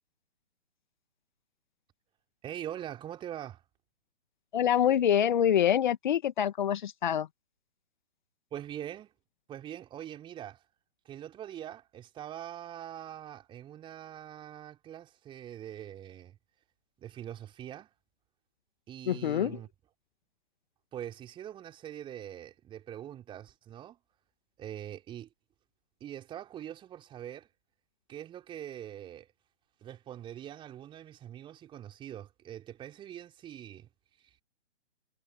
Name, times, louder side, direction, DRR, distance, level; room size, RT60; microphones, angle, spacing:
voice 1, 2.4-3.6 8.5-9.1 9.5-10.6 11.0-16.4 17.0-17.9 18.9-19.7 20.9-24.0 24.6-25.3 26.0-27.5 28.1-29.3 29.8-33.9 34.2-34.3, right 11 dB, 15° right, 4.2 m, -43 dB
voice 2, 4.5-7.3 19.1-19.6, left 9 dB, 45° left, 2.0 m, -26 dB
figure-of-eight pair, 130°, 34 cm